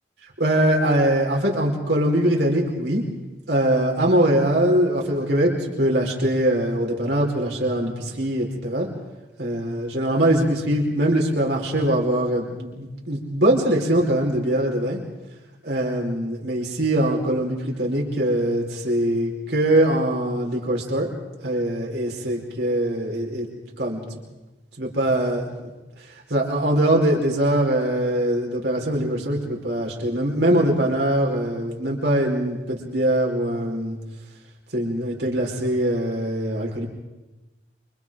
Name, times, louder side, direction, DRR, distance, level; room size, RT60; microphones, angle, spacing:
voice 1, 0.4-3.0 3.5-8.9 9.4-15.0 15.6-21.1 21.4-23.5 23.8-24.0 24.8-25.7 26.0-34.0 34.7-36.9, right 1 dB, 70° right, 0 dB, 4.5 m, -22 dB
28.5 x 26.0 x 3.8 m, 1.1 s
head